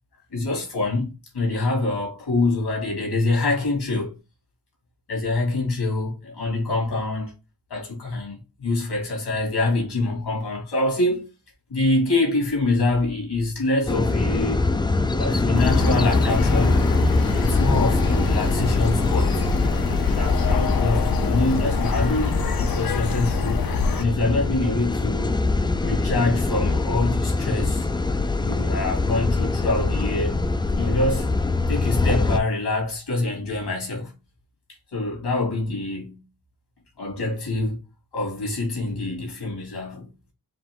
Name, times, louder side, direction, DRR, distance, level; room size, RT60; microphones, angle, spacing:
voice 1, 0.3-4.1 5.1-7.3 7.7-11.3 11.7-14.6 15.1-16.8 17.4-19.4 20.1-23.7 24.0-25.4 25.8-27.9 28.4-30.3 30.8-31.3 31.7-34.1 34.9-36.2 37.0-37.8 38.1-40.1, left 2 dB, 80° left, 2.3 m, -25 dB
sound 1, 13.9-32.4, left 3 dB, 15° left, 0.3 m, -24 dB
sound 2, 15.5-24.0, left 4 dB, 60° left, 0.7 m, -24 dB
5.1 x 2.6 x 3.5 m
wide cardioid pair, 105°, 39 cm